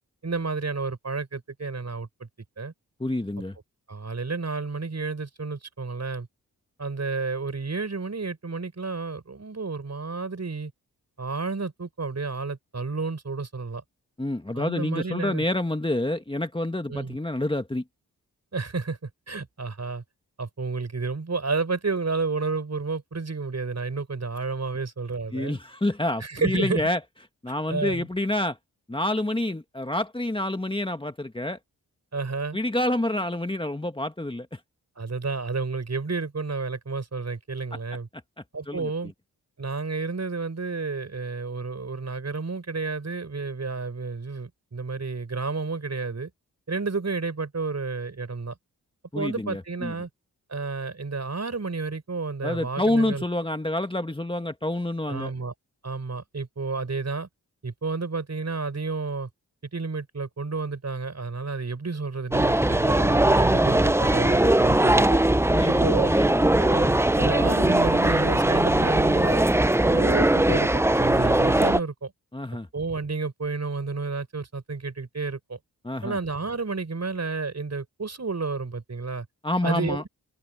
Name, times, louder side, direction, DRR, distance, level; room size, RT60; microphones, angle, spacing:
voice 1, 0.2-2.3 2.6-2.7 3.9-6.3 6.8-10.7 11.2-13.8 14.5-15.4 16.9-17.2 18.5-20.0 20.4-25.6 26.2-26.8 27.7-28.1 32.1-32.6 35.0-38.1 38.5-39.1 39.6-46.3 46.7-48.6 49.1-50.1 50.5-53.2 55.1-55.5 55.8-57.3 57.6-59.3 59.7-65.2 65.7-66.1 66.6-69.4 69.8-72.1 72.7-75.6 76.0-79.3 79.6-80.1, right 4 dB, 45° right, 6.3 m, -31 dB
voice 2, 3.0-3.6 14.2-17.8 25.3-27.0 27.4-28.6 28.9-31.6 32.5-34.6 38.1-38.2 38.7-38.9 49.1-49.9 52.4-55.3 65.5-66.5 72.3-72.7 75.8-76.2 79.4-80.0, left 1 dB, 15° left, 1.8 m, -28 dB
sound 1, 62.3-71.8, right 1 dB, 5° right, 0.8 m, -20 dB
open air
supercardioid pair, 45°, 36 cm